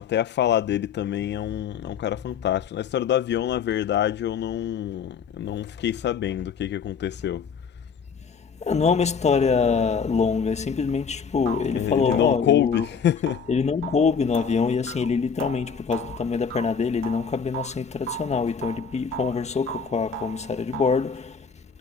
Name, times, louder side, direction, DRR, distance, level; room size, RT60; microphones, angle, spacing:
voice 1, 0.0-7.5 11.7-13.5, left 11 dB, 60° left, 0.7 m, -26 dB
voice 2, 8.6-12.9 13.5-21.5, left 5 dB, 35° left, 1.8 m, -24 dB
sound 1, 10.9-11.0 11.5-17.8 18.1-19.4 19.7-21.1, right 13 dB, 85° right, 3.9 m, -38 dB
cardioid pair, 90°, 20 cm